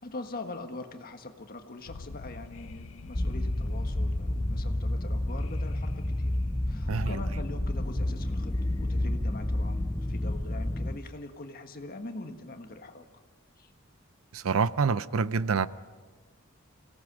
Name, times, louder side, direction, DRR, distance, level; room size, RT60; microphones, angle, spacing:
voice 1, 0.0-6.3 6.7-13.1 13.6-13.7, left 2 dB, 45° left, 6 dB, 1.5 m, -43 dB
sound 1, 1.9-10.8, left 3 dB, 80° left, 0.7 m, -45 dB
sound 2, 3.1-11.0, left 1 dB, 15° left, 0.5 m, -30 dB
voice 2, 6.9-7.2 14.3-15.7, right 5 dB, 70° right, 16 dB, 0.5 m, -27 dB
26.0 x 17.0 x 6.3 m, 1.4 s
head